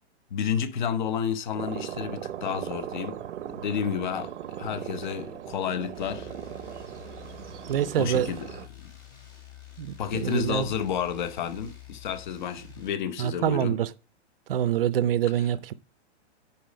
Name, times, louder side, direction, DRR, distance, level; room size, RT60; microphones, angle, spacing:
voice 1, 0.3-3.2 3.5-6.3 8.0-8.9 10.0-13.8 15.4-15.5, left 7 dB, 45° left, 0.9 m, -31 dB
sound 1, 1.5-8.7, right 10 dB, 85° right, 0.8 m, -38 dB
sound 2, 5.9-12.9, left 12 dB, 10° left, 1.2 m, -48 dB
voice 2, 7.7-8.3 9.8-10.7 13.2-13.9 14.5-15.7, right 10 dB, 55° right, 0.6 m, -25 dB
10.5 x 4.1 x 5.2 m
hypercardioid pair, 180°, 34 cm